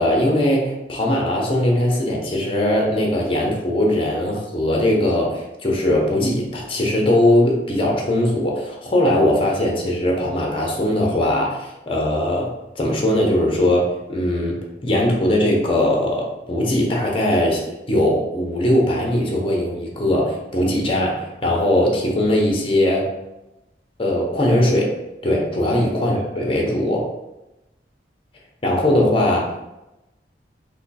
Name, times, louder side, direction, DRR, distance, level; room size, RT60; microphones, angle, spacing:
voice 1, 0.0-17.6 17.9-23.1 24.0-25.0 25.2-27.1 28.6-29.7, left 1 dB, 30° left, -1 dB, 0.7 m, -20 dB
3.6 x 2.2 x 4.1 m, 0.96 s
head